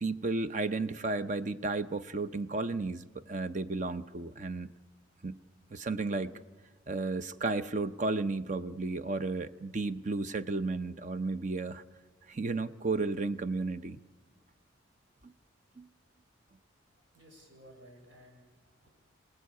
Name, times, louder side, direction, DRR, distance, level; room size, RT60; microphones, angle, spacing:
voice 1, 0.0-4.7 5.2-5.4 5.7-6.3 6.9-11.8 12.3-14.0 15.2-15.3 15.8-15.9, right 3 dB, 40° right, 12 dB, 0.7 m, -33 dB
voice 2, 17.1-18.9, equal, 75° right, 1 dB, 6.5 m, -56 dB
27.5 x 18.5 x 8.4 m, 1.2 s
head